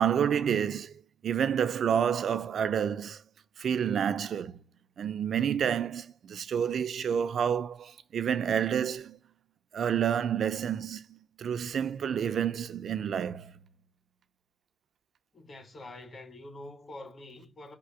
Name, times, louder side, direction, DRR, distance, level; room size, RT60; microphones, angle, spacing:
voice 1, 0.0-3.2 3.6-4.6 5.0-9.2 9.7-13.5, right 8 dB, 80° right, 0.6 m, -29 dB
voice 2, 15.3-17.8, left 2 dB, 45° left, 2.3 m, -46 dB
5.7 x 3.8 x 4.5 m
wide cardioid pair, 135°, 0 cm